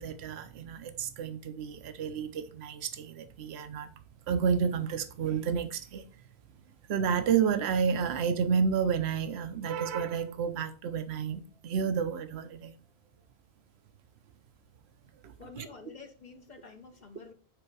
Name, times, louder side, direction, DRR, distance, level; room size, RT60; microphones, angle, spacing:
voice 1, 0.0-3.9 4.3-6.0 6.9-12.7 15.2-15.7, right 6 dB, 80° right, 0.9 m, -30 dB
voice 2, 15.4-17.3, left 4 dB, 45° left, 0.9 m, -49 dB
8.1 x 3.5 x 4.6 m
omnidirectional pair, 1.1 m